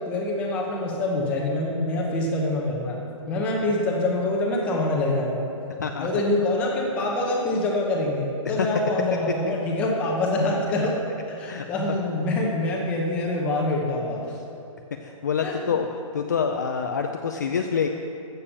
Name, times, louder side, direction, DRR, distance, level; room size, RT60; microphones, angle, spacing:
voice 1, 0.1-3.0 3.3-5.5 6.0-11.0 11.3-14.4 15.4-15.5, left 2 dB, 5° left, -2 dB, 0.8 m, -25 dB
voice 2, 5.8-6.1 8.5-8.7 9.4-9.5 11.5-11.6 15.0-17.9, left 6 dB, 35° left, 4 dB, 0.4 m, -26 dB
14.0 x 7.0 x 7.0 m, 2.7 s
hypercardioid pair, 180°, 18 cm